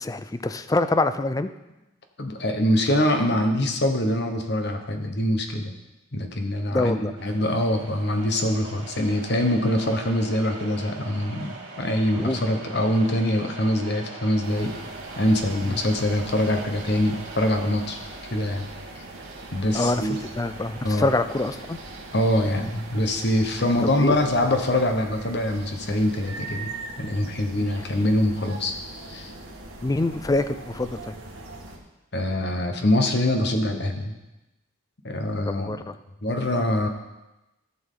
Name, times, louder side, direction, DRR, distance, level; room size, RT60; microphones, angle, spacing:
voice 1, 0.0-1.5 6.7-7.1 12.2-12.4 15.7-15.8 19.7-21.8 24.0-24.2 27.5-27.7 29.8-31.2 35.4-36.0, left 2 dB, 15° left, 11 dB, 0.3 m, -25 dB
voice 2, 2.2-5.7 6.1-7.0 7.2-14.8 15.2-18.0 18.3-18.7 19.5-20.2 20.8-21.1 22.1-26.7 27.0-28.8 29.1-29.3 32.1-34.1 35.0-35.8 36.2-36.9, left 1 dB, 55° left, 5 dB, 1.1 m, -24 dB
sound 1, 7.1-23.9, right 3 dB, 65° right, 1.9 m, -42 dB
sound 2, 14.4-31.8, right 2 dB, 80° right, 1.6 m, -41 dB
14.0 x 6.2 x 3.8 m, 1.0 s
head